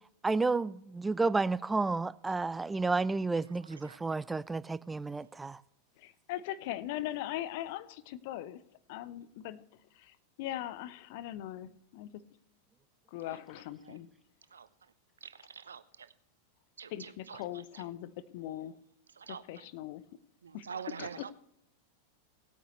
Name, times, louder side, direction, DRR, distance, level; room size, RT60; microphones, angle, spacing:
voice 1, 0.2-5.6, right 3 dB, 10° right, 0.4 m, -31 dB
voice 2, 6.0-8.6 8.9-9.6 10.0-12.2 13.1-14.1 16.9-18.8 19.3-20.0 20.5-20.7 21.0-21.3, left 13 dB, 50° left, 0.8 m, -40 dB
voice 3, 15.2-16.1 16.8-17.9 19.2-19.7 20.4-21.3, right 6 dB, 70° right, 0.7 m, -46 dB
18.5 x 9.1 x 3.1 m
figure-of-eight pair, 90°, 0 cm